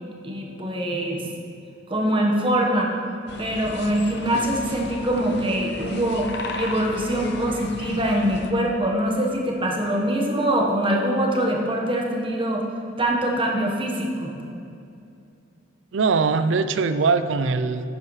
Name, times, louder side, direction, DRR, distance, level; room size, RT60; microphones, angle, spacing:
voice 1, 0.2-1.2 1.9-2.9 3.4-6.3 6.5-12.6 13.0-14.3, right 1 dB, 30° right, 0 dB, 1.3 m, -23 dB
sound 1, 3.3-8.5, left 2 dB, 60° left, 0.7 m, -35 dB
voice 2, 15.9-17.9, right 4 dB, 85° right, 11 dB, 0.5 m, -21 dB
11.5 x 9.2 x 3.2 m, 2.6 s
head